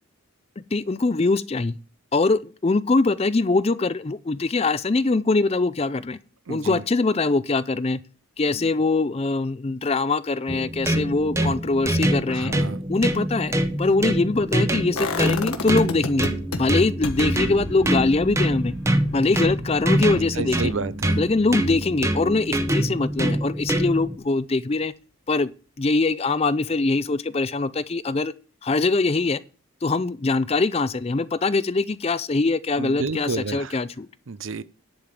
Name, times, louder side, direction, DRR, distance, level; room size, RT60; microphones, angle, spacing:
voice 1, 0.6-1.8 2.1-6.2 6.5-8.0 8.4-12.5 12.9-16.3 16.6-18.8 19.1-20.7 21.2-24.9 25.3-25.5 25.8-28.3 28.6-29.4 29.8-34.1, left 3 dB, 30° left, 0.4 m, -23 dB
voice 2, 6.5-6.8 12.3-12.8 20.4-21.2 32.8-33.8 34.3-34.6, right 4 dB, 65° right, 0.6 m, -30 dB
sound 1, 10.5-24.2, right 1 dB, 15° right, 0.8 m, -25 dB
sound 2, 15.0-16.6 17.0-22.9 23.2-23.3, left 3 dB, 85° left, 1.3 m, -34 dB
10.5 x 5.0 x 7.4 m
head